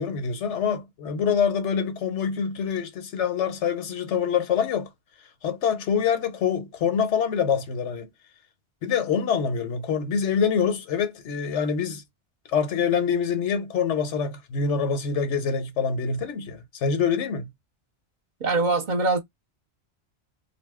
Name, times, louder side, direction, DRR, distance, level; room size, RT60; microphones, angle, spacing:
voice 1, 0.0-4.9 5.4-8.1 8.8-12.0 12.5-17.5, left 6 dB, 90° left, 1.1 m, -25 dB
voice 2, 18.4-19.2, right 3 dB, 50° right, 0.8 m, -23 dB
2.7 x 2.3 x 3.5 m
omnidirectional pair, 1.2 m